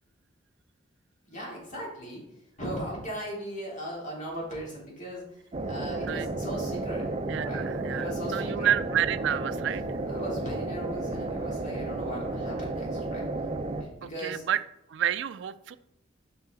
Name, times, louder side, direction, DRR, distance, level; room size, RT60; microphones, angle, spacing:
voice 1, 1.3-2.2 2.6-7.1 7.4-7.7 8.0-8.7 10.1-13.3 13.8-14.4, equal, 40° left, -4 dB, 3.2 m, -38 dB
sound 1, 5.5-13.8, right 2 dB, 30° right, 0.6 m, -32 dB
voice 2, 7.3-9.8 14.0-14.6 14.9-15.8, right 10 dB, 70° right, 15 dB, 0.4 m, -29 dB
8.0 x 5.6 x 3.9 m, 0.81 s
head